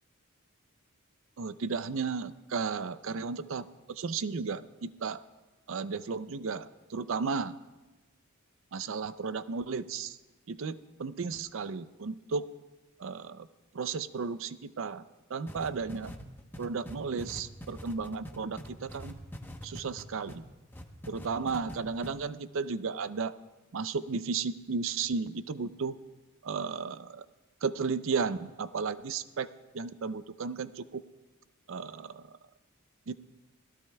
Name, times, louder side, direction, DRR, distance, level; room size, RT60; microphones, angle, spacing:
voice 1, 1.4-5.2 5.7-7.5 8.7-10.2 10.5-12.5 13.0-13.5 13.7-15.0 15.3-16.1 16.6-19.2 19.6-20.4 21.1-23.4 23.7-26.0 26.4-27.3 27.6-29.5 29.7-31.0 31.7-32.3 33.1-33.2, right 5 dB, 65° right, 14 dB, 0.5 m, -34 dB
sound 1, 15.5-20.4 20.7-21.8 22.0-22.1, equal, 10° left, 0.9 m, -43 dB
24.0 x 17.5 x 2.3 m, 1.2 s
head